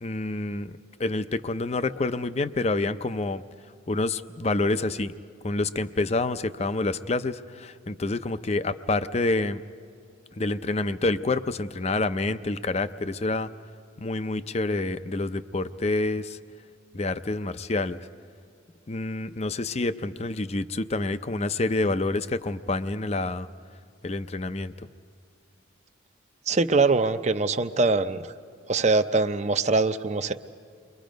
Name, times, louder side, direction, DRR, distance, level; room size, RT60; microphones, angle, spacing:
voice 1, 0.0-3.4 3.9-5.1 5.4-9.6 10.4-13.5 14.0-16.4 16.9-18.0 18.9-23.5 24.0-24.7, left 2 dB, 30° left, 12 dB, 0.5 m, -28 dB
voice 2, 26.5-28.3 28.7-30.3, right 3 dB, 35° right, 9 dB, 0.6 m, -23 dB
29.5 x 23.0 x 5.2 m, 2.3 s
head